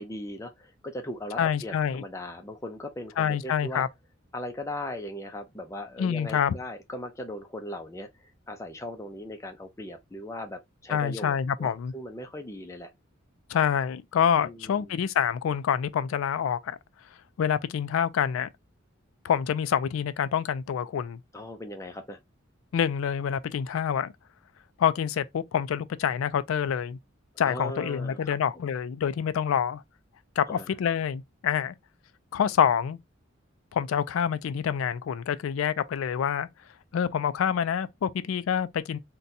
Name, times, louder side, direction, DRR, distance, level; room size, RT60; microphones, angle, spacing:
voice 1, 0.0-3.8 4.3-12.9 14.4-14.9 21.3-22.2 27.4-28.4 30.5-30.7, left 1 dB, 15° left, 0.5 m, -38 dB
voice 2, 1.4-2.0 3.2-3.9 6.0-6.6 10.9-11.9 13.5-16.8 17.4-18.5 19.2-21.2 22.7-24.1 24.8-27.0 27.4-29.8 30.4-31.7 32.3-33.0 33.7-36.5 36.9-39.0, left 8 dB, 90° left, 0.3 m, -27 dB
3.9 x 2.2 x 2.6 m
head